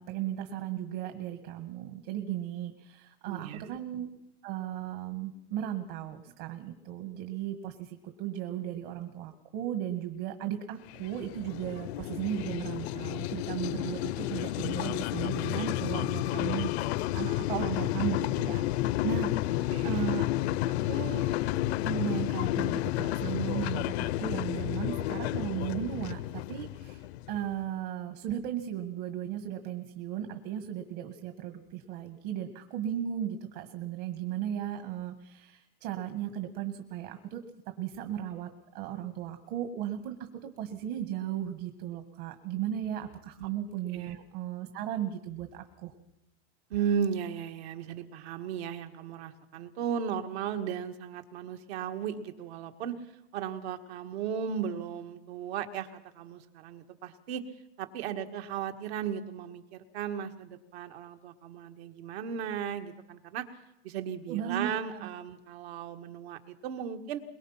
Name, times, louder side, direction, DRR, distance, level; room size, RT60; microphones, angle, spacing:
voice 1, 0.0-4.1 4.4-20.2 20.9-21.3 21.8-38.5 38.7-45.9 64.3-65.1, right 10 dB, 55° right, 7 dB, 1.9 m, -36 dB
voice 2, 3.3-3.8 19.7-20.1 43.4-43.5 43.9-44.2 46.7-57.4 57.8-63.5 63.8-67.2, right 8 dB, 75° right, 6 dB, 2.1 m, -36 dB
sound 1, 10.9-27.5, left 15 dB, 75° left, 0.7 m, -31 dB
23.0 x 22.0 x 5.8 m, 0.87 s
supercardioid pair, 165°, 32 cm